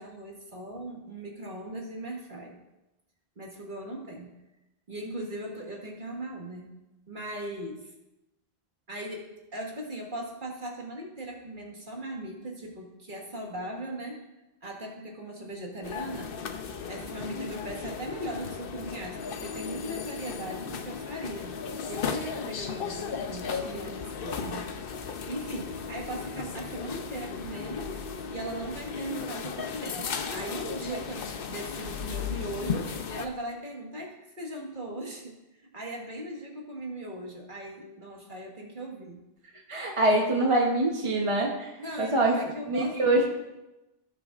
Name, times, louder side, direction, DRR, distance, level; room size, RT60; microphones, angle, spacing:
voice 1, 0.0-2.6 3.4-4.3 4.9-6.7 7.1-7.9 8.9-14.3 14.6-16.4 16.9-21.5 21.9-24.7 25.3-27.9 28.3-39.2 41.8-43.2, right 1 dB, 50° right, -1 dB, 1.8 m, -39 dB
sound 1, 15.8-33.3, left 6 dB, 65° left, 0.8 m, -35 dB
voice 2, 39.7-41.7 42.0-43.2, right 2 dB, 30° right, -1 dB, 1.0 m, -24 dB
16.5 x 6.4 x 2.4 m, 0.99 s
omnidirectional pair, 1.1 m